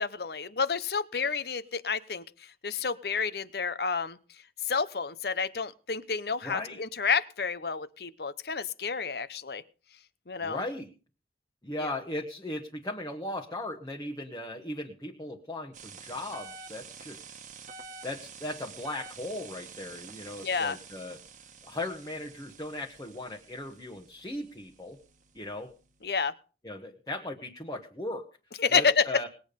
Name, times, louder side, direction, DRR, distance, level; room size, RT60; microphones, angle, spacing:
voice 1, 0.0-2.2 2.6-4.2 4.6-9.6 10.3-10.6 11.8-11.9 20.4-20.8 26.0-26.3 28.6-29.1, left 5 dB, 60° left, 15 dB, 0.8 m, -29 dB
voice 2, 6.4-6.9 10.4-10.9 11.6-17.2 18.0-21.2 21.6-25.0 25.3-25.7 26.6-28.3 28.7-29.3, left 1 dB, 20° left, 1 dB, 1.2 m, -37 dB
sound 1, 15.7-26.2, right 5 dB, 45° right, 1.3 m, -49 dB
20.0 x 8.6 x 5.3 m, 0.36 s
head